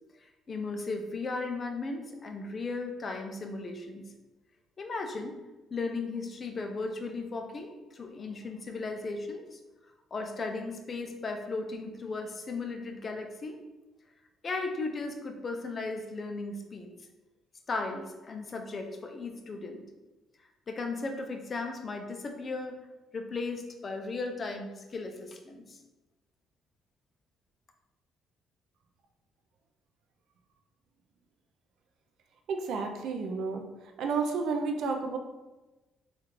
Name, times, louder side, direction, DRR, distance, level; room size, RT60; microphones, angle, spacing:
voice 1, 0.2-4.1 4.8-5.4 5.7-9.6 10.1-13.6 14.4-16.9 17.7-19.9 20.7-22.8 23.1-25.8, left 3 dB, 25° left, 4 dB, 0.3 m, -36 dB
voice 2, 32.5-33.6 34.0-35.2, right 4 dB, 60° right, 3 dB, 0.3 m, -31 dB
3.6 x 2.3 x 3.0 m, 1.1 s
cardioid pair, 170°, 0 cm